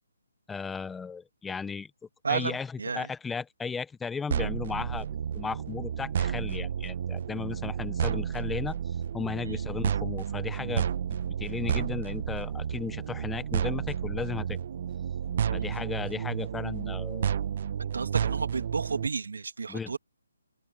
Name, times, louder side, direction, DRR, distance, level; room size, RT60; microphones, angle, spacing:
voice 1, 0.5-1.9 2.3-2.7 2.9-5.1 5.3-8.7 9.1-10.9 11.4-14.6 15.5-17.3 19.7-20.0, left 5 dB, 5° left, 0.9 m, -35 dB
voice 2, 2.2-3.1 9.4-9.7 15.5-15.7 17.8-20.0, right 4 dB, 75° right, 2.8 m, -32 dB
sound 1, 4.3-19.1, right 8 dB, 45° right, 1.0 m, -31 dB
open air
hypercardioid pair, 155°, 0 cm